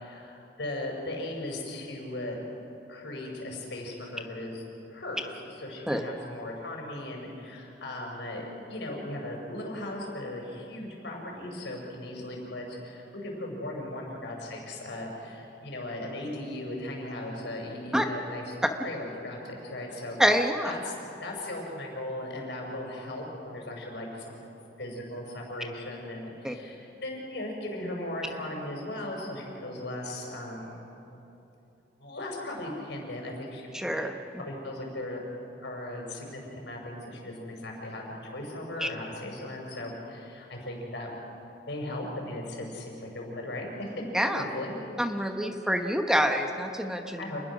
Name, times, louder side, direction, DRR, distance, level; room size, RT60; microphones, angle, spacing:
voice 1, 0.0-2.4 2.9-4.6 4.9-18.6 18.8-20.2 20.6-20.9 21.2-24.4 24.8-30.9 32.0-33.7 34.0-34.1 34.4-35.2 35.6-41.1 41.7-44.0 44.4-44.7 47.2-47.4, left 1 dB, 75° left, 0 dB, 6.0 m, -37 dB
voice 2, 20.2-20.7 26.4-26.5 33.7-34.2 38.8-38.9 44.1-44.4 45.0-47.2, equal, 5° right, 4 dB, 1.0 m, -26 dB
28.0 x 20.5 x 6.3 m, 2.9 s
head